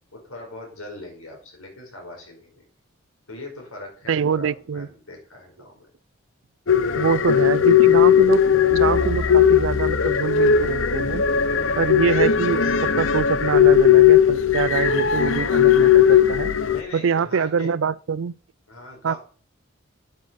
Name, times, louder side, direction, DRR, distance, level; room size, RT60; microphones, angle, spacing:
voice 1, 0.1-2.6 3.3-5.9 7.6-7.7 16.7-17.7 18.7-19.2, left 2 dB, 85° left, 5.1 m, -40 dB
voice 2, 4.1-4.9 6.9-8.4 8.7-11.2 11.8-16.5 16.9-18.3 19.0-19.1, right 6 dB, 70° right, 0.4 m, -24 dB
sound 1, 6.7-16.8, left 8 dB, 70° left, 0.7 m, -17 dB
9.7 x 9.4 x 5.3 m
head